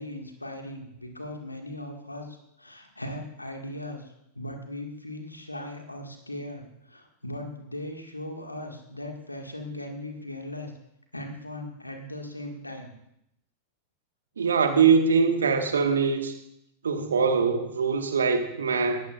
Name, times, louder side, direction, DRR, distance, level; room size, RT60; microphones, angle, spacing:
voice 1, 0.0-10.7 11.1-12.9, left 1 dB, 85° left, 3 dB, 1.8 m, -38 dB
voice 2, 14.4-16.3 16.8-19.1, right 5 dB, 70° right, 6 dB, 1.4 m, -23 dB
18.5 x 14.0 x 2.4 m, 0.79 s
figure-of-eight pair, 90°, 0 cm